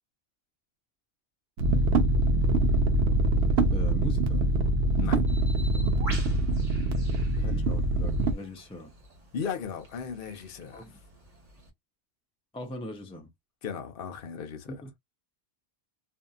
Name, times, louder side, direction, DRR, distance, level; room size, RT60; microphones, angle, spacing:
sound 1, 1.6-8.3, right 1 dB, 70° right, 0.9 m, -24 dB
voice 1, 3.7-4.4 7.4-8.9 10.7-11.0 12.5-13.3 14.7-15.0, left 1 dB, 5° left, 0.5 m, -41 dB
voice 2, 5.0-5.3 9.3-10.8 13.6-14.8, left 6 dB, 55° left, 0.9 m, -36 dB
Bird, 5.3-11.7, right 1 dB, 35° right, 1.1 m, -47 dB
2.8 x 2.5 x 2.3 m
omnidirectional pair, 1.2 m